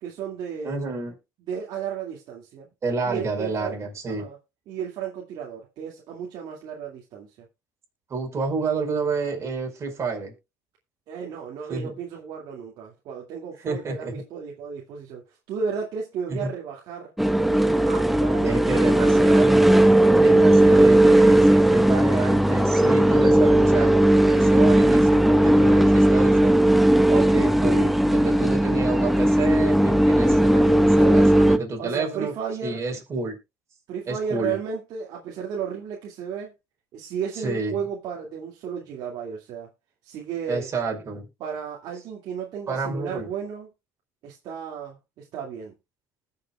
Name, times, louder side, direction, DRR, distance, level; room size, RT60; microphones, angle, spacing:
voice 1, 0.0-0.8 1.4-2.7 3.0-3.8 4.1-4.4 4.7-7.5 11.1-17.1 17.9-19.3 30.6-31.4 31.8-32.9 33.9-36.5 36.9-39.7 40.0-40.7 41.4-43.7 44.2-45.7, right 7 dB, 60° right, 2.3 m, -34 dB
voice 2, 0.6-1.1 2.8-4.3 8.1-10.3 11.7-11.9 13.6-14.2 16.3-16.5 18.4-19.7 20.1-26.6 27.1-32.3 32.6-33.4 34.1-34.6 37.4-37.8 40.5-41.3 42.7-43.3, right 4 dB, 35° right, 5.2 m, -29 dB
sound 1, 17.2-31.6, right 1 dB, ahead, 1.0 m, -17 dB
20.0 x 6.7 x 2.3 m
supercardioid pair, 95°, 8 cm